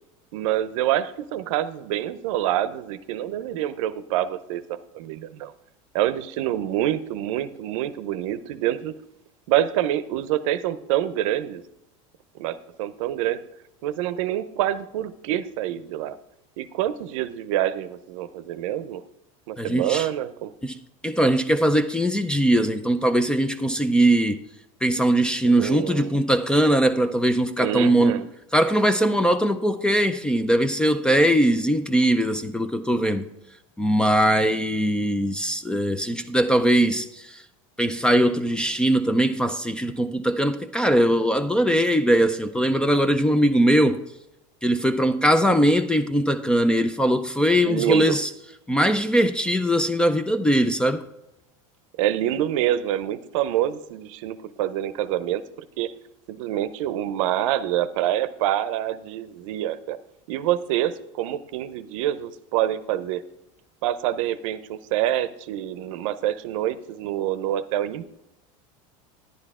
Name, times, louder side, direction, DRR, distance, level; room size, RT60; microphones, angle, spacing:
voice 1, 0.3-5.5 5.9-8.9 9.5-11.6 12.4-13.4 13.8-16.2 16.6-19.0 19.5-20.5 25.6-26.1 27.6-28.2 47.6-48.2 52.0-55.9 56.3-60.0 60.3-63.2 63.8-68.1, right 12 dB, 70° right, 0.6 m, -26 dB
voice 2, 19.6-20.1 20.6-24.4 24.8-28.3 28.5-33.3 33.8-37.4 37.8-44.0 44.6-48.3 48.7-51.0, right 1 dB, 5° left, 0.4 m, -21 dB
10.5 x 9.9 x 3.6 m
supercardioid pair, 145°, 17 cm